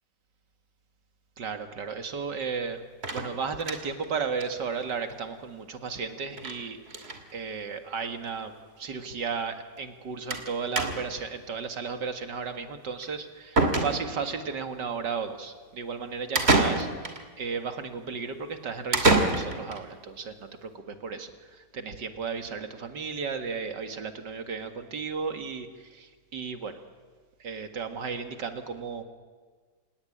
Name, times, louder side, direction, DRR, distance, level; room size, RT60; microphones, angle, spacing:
voice 1, 1.4-2.8 3.1-26.8 27.4-29.0, right 5 dB, 85° right, 7 dB, 2.5 m, -34 dB
sound 1, 3.0-4.1 4.4-4.5 4.8-4.9 5.1-5.2 6.4-6.6 6.9-7.2 8.1-8.2 8.5-8.6 10.3-10.5 10.8-11.2 13.0-13.1 13.6-14.3 16.4-17.2 18.9-19.8, right 2 dB, 35° right, 2.6 m, -26 dB
28.0 x 18.0 x 10.0 m, 1.5 s
omnidirectional pair, 1.8 m